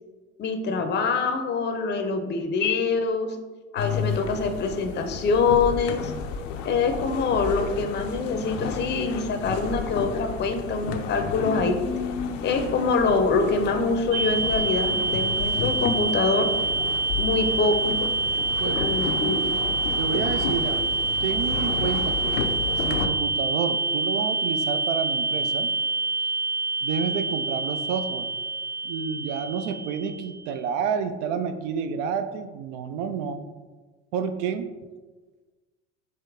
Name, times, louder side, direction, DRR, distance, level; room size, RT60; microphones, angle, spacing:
voice 1, 0.4-3.4 3.7-6.1 6.6-11.8 12.4-16.5 17.2-18.0 18.7-19.4, left 4 dB, 25° left, 6 dB, 0.6 m, -25 dB
sound 1, 3.8-23.1, left 6 dB, 70° left, 0.6 m, -32 dB
sound 2, 14.1-30.5, right 3 dB, 45° right, 0.9 m, -27 dB
voice 2, 18.6-18.9 20.0-21.0 21.2-22.4 22.8-25.7 26.8-28.3 28.8-33.4 34.1-34.7, right 6 dB, 60° right, 9 dB, 0.5 m, -29 dB
4.9 x 2.9 x 3.5 m, 1.3 s
hypercardioid pair, 70°, 39 cm